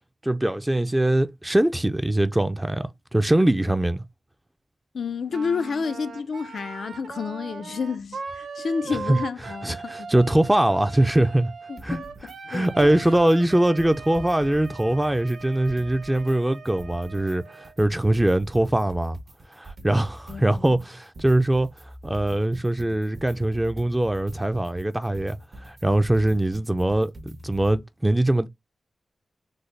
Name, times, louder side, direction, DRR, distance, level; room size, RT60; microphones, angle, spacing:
voice 1, 0.2-4.0 8.9-9.2 9.4-11.5 11.8-12.0 12.5-19.2 19.5-21.7 22.0-28.5, right 1 dB, 15° right, 0.4 m, -22 dB
voice 2, 4.9-10.1 11.7-12.7 20.3-20.8, left 5 dB, 80° left, 0.3 m, -30 dB
Wind instrument woodwind instrument, 5.3-17.8, right 5 dB, 85° right, 0.5 m, -39 dB
sound 1, 11.8-12.4 12.6-13.4 13.6-16.4 16.6-27.8, right 1 dB, 55° right, 1.0 m, -43 dB
3.9 x 2.0 x 3.2 m
wide cardioid pair, 80°, 0 cm